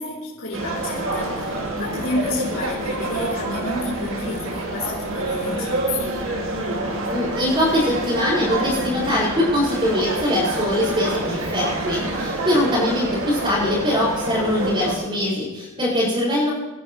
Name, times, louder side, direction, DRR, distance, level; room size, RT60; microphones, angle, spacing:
voice 1, 0.0-6.2, left 2 dB, 75° left, -7 dB, 3.4 m, -30 dB
sound 1, 0.5-15.0, right 2 dB, 65° right, 2.3 m, -27 dB
voice 2, 7.1-16.5, left 1 dB, 25° right, -10 dB, 5.5 m, -22 dB
26.0 x 11.0 x 3.1 m, 1.1 s
head